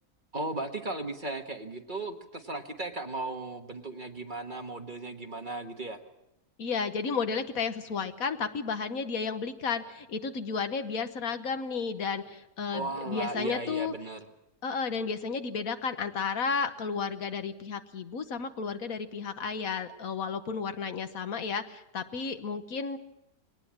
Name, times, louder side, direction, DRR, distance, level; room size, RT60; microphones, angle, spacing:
voice 1, 0.3-6.0 12.7-14.2, right 2 dB, 35° right, 5 dB, 1.4 m, -36 dB
voice 2, 6.6-13.9 14.6-23.0, left 5 dB, 70° left, 10 dB, 1.5 m, -32 dB
22.0 x 18.5 x 7.4 m, 0.86 s
omnidirectional pair, 1.6 m